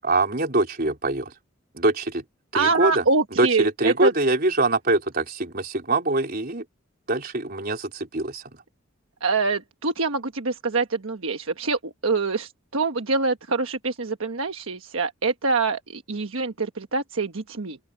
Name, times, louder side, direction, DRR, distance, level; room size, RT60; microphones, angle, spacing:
voice 1, 0.0-1.3 1.7-2.2 2.5-3.0 3.4-6.6 7.1-8.4, right 2 dB, 45° right, 4.2 m, -23 dB
voice 2, 2.5-4.1 9.2-17.8, right 4 dB, 75° right, 1.3 m, -25 dB
open air
head